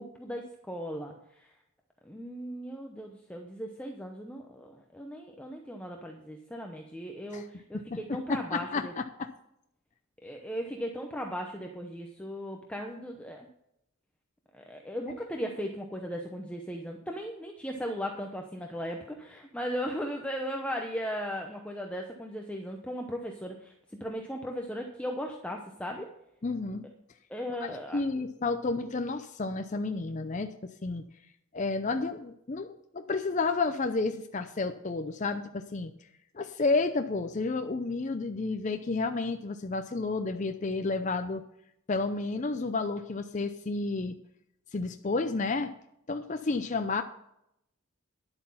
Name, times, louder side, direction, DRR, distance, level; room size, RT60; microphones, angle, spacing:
voice 1, 0.0-1.5 2.0-8.9 10.2-13.5 14.5-26.1 27.3-28.0, equal, 5° left, 2 dB, 0.8 m, -37 dB
voice 2, 7.7-9.3 26.4-26.9 27.6-31.0 31.5-35.9 36.3-41.4 41.9-44.2 44.7-45.7 46.1-47.0, left 3 dB, 35° left, 7 dB, 0.5 m, -31 dB
11.0 x 7.9 x 5.6 m, 0.79 s
head